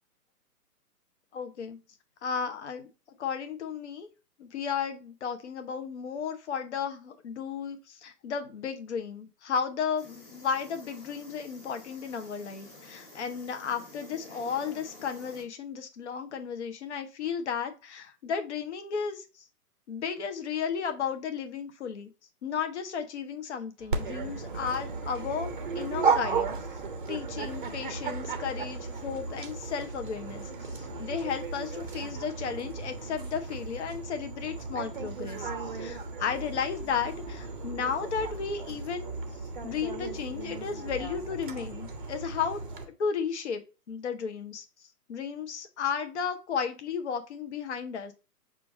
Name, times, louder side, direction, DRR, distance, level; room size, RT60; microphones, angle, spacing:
voice 1, 1.3-1.8 2.2-2.9 3.2-4.1 4.4-19.4 19.9-22.1 22.4-26.5 27.1-39.1 39.6-43.6 43.9-44.6 45.1-48.1, left 6 dB, 45° left, 7 dB, 0.7 m, -34 dB
sound 1, 10.0-15.4, left 2 dB, 15° left, 0.8 m, -50 dB
sound 2, 23.8-42.9, right 2 dB, 5° right, 1.1 m, -49 dB
Dog, 23.9-42.8, right 4 dB, 35° right, 0.6 m, -35 dB
5.6 x 2.5 x 3.8 m, 0.31 s
figure-of-eight pair, 130°, 47 cm